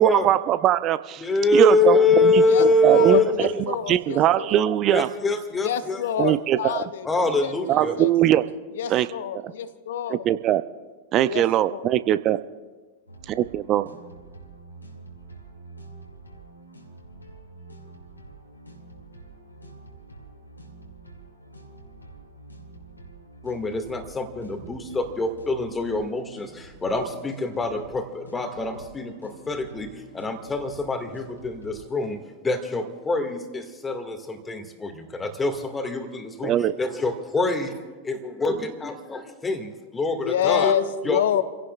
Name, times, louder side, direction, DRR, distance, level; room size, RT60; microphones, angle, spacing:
voice 1, 0.0-1.2 1.5-5.1 6.2-6.9 7.7-8.4 8.9-9.1 10.1-10.6 11.1-12.4 13.3-13.9 36.4-36.7, right 12 dB, 35° right, 14 dB, 0.6 m, -21 dB
voice 2, 1.2-3.6 4.9-6.4 7.0-7.9 23.4-37.7 38.1-41.4, left 2 dB, 15° left, 6 dB, 2.1 m, -25 dB
voice 3, 2.5-4.6 5.5-8.1 8.8-10.2 11.2-11.4 11.7-11.9 40.2-41.4, left 9 dB, 60° left, 12 dB, 0.9 m, -28 dB
sound 1, 13.1-32.0, right 2 dB, 85° left, 2.6 m, -46 dB
29.5 x 17.0 x 2.5 m, 1.4 s
figure-of-eight pair, 90°, 0 cm